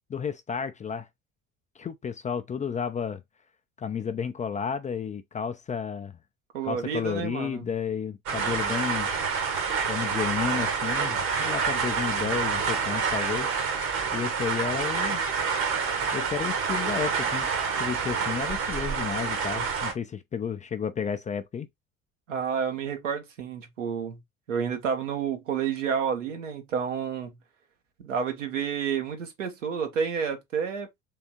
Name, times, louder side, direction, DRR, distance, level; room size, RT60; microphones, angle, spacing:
voice 1, 0.1-1.1 1.8-3.2 3.8-6.2 6.6-9.1 9.9-13.5 14.1-15.2 16.1-17.5 17.8-21.7, left 7 dB, 20° left, 0.5 m, -32 dB
voice 2, 6.5-7.6 22.3-24.2 24.5-27.4 28.0-30.9, right 7 dB, 75° right, 1.1 m, -30 dB
sound 1, 8.3-19.9, right 5 dB, 55° right, 1.4 m, -28 dB
3.7 x 3.4 x 2.7 m
figure-of-eight pair, 55°, 38 cm